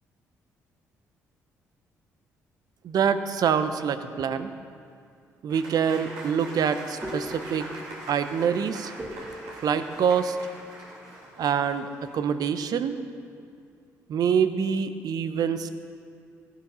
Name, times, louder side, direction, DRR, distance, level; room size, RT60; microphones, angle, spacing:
voice 1, 2.8-4.5 5.4-7.7 8.1-8.9 9.6-10.4 11.4-13.0 14.1-15.7, right 7 dB, 60° right, 10 dB, 0.8 m, -25 dB
Applause / Crowd, 5.5-12.3, right 1 dB, 80° right, 3.1 m, -43 dB
sound 1, 5.9-11.6, equal, 25° right, 2.2 m, -43 dB
15.5 x 11.0 x 5.6 m, 2.4 s
hypercardioid pair, 55°, 7 cm